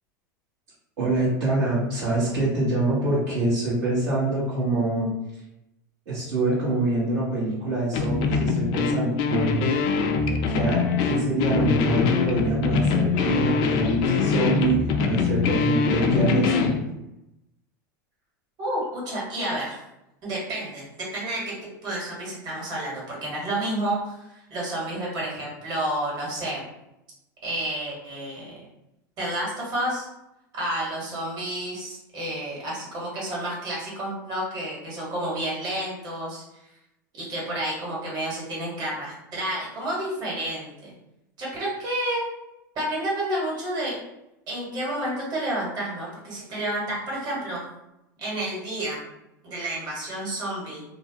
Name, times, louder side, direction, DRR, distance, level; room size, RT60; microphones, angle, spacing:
voice 1, 1.0-5.1 6.1-9.5 10.5-16.8, right 2 dB, 65° right, -8 dB, 1.0 m, -25 dB
sound 1, 7.9-16.8, left 5 dB, 50° left, 0.4 m, -23 dB
voice 2, 18.6-19.8 20.2-21.5 21.8-26.7 27.4-28.6 29.2-30.1 30.5-36.4 37.1-40.9 41.4-42.2 42.7-44.0 44.5-47.6 48.2-49.0 49.4-50.8, right 1 dB, 40° right, -5 dB, 1.4 m, -30 dB
2.6 x 2.1 x 2.7 m, 0.89 s
hypercardioid pair, 105°, 10 cm